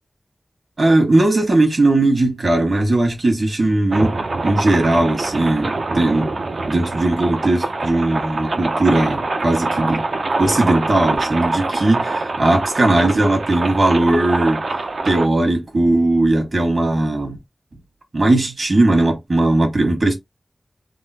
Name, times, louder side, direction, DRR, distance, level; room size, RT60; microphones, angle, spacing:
voice 1, 0.8-4.1 4.4-6.3 6.7-10.0 10.4-14.6 15.0-17.4 18.1-20.1, right 2 dB, 65° right, 1.4 m, -18 dB
sound 1, 3.9-15.3, right 3 dB, 90° right, 0.5 m, -24 dB
3.7 x 2.0 x 2.7 m
wide cardioid pair, 90°, 0 cm